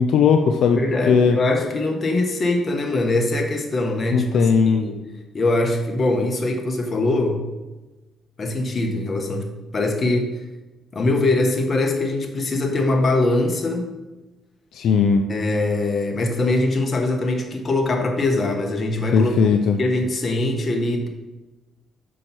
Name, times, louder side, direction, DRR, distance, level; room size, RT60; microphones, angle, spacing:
voice 1, 0.0-0.8 1.1-1.4 4.1-4.8 14.7-15.2 19.1-19.8, left 6 dB, 75° left, 6 dB, 0.5 m, -17 dB
voice 2, 0.7-5.0 5.3-7.4 8.4-10.3 10.9-13.9 15.3-21.1, left 2 dB, 40° left, 3 dB, 1.2 m, -22 dB
6.3 x 5.4 x 4.4 m, 1.1 s
cardioid pair, 90°, 0 cm